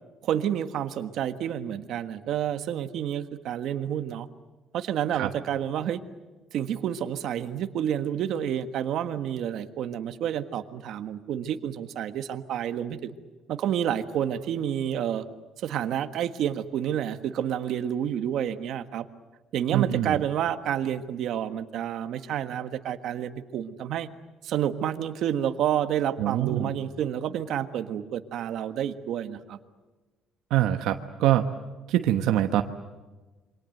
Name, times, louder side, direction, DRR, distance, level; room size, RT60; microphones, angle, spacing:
voice 1, 0.2-4.3 4.7-6.0 6.5-13.1 13.5-15.2 15.6-19.1 19.5-24.1 24.4-29.6, right 10 dB, 55° right, 9 dB, 1.5 m, -29 dB
voice 2, 19.7-20.2 26.2-26.7 30.5-31.5 31.9-32.6, right 13 dB, 75° right, 6 dB, 1.2 m, -24 dB
28.0 x 25.0 x 7.9 m, 1.2 s
cardioid pair, 165°, 0 cm